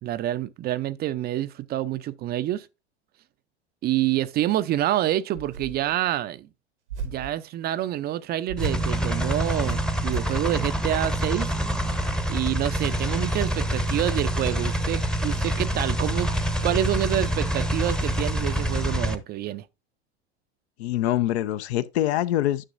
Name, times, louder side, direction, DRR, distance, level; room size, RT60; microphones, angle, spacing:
voice 1, 0.0-2.7 3.8-6.5 7.0-11.5 12.3-16.3 16.6-19.7, right 13 dB, 30° right, 0.4 m, -27 dB
sound 1, 5.3-5.9 6.9-7.4 8.5-8.9 9.7-10.4, right 5 dB, 90° right, 1.2 m, -35 dB
sound 2, 8.6-19.1, right 1 dB, ahead, 0.7 m, -26 dB
voice 2, 20.8-22.6, left 13 dB, 70° left, 0.6 m, -24 dB
9.9 x 6.1 x 2.5 m
hypercardioid pair, 95°, 34 cm